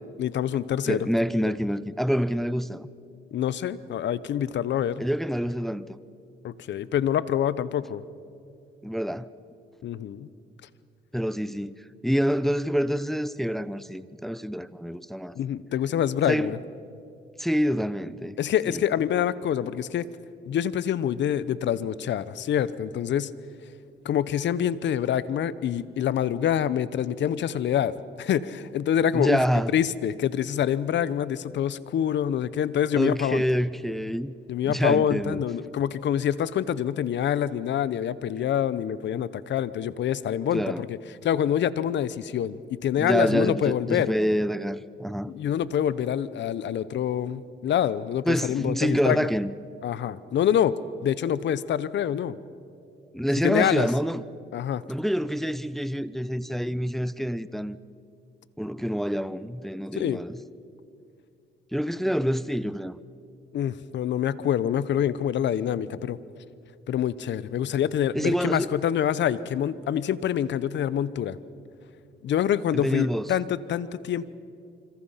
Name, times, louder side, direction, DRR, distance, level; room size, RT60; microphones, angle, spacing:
voice 1, 0.2-1.0 3.3-5.0 6.4-8.0 9.8-10.3 15.4-16.6 18.4-20.1 20.5-23.3 24.0-27.9 28.2-29.4 29.7-33.4 34.5-41.0 41.2-44.1 45.3-49.3 49.8-52.4 53.4-53.9 54.5-54.8 60.0-60.2 63.5-66.2 66.9-71.4 72.2-74.3, left 9 dB, 65° left, 0.9 m, -26 dB
voice 2, 0.9-2.9 5.0-6.0 8.8-9.3 11.1-11.8 12.0-15.4 16.3-16.5 17.4-18.4 18.7-18.8 29.1-29.7 32.9-34.3 34.7-35.4 40.5-40.8 43.0-45.3 48.3-49.5 53.1-54.2 54.9-57.8 58.6-60.4 61.7-63.0 68.1-68.7 72.7-73.3, equal, ahead, 0.6 m, -27 dB
26.5 x 26.0 x 5.8 m
cardioid pair, 90°, 20 cm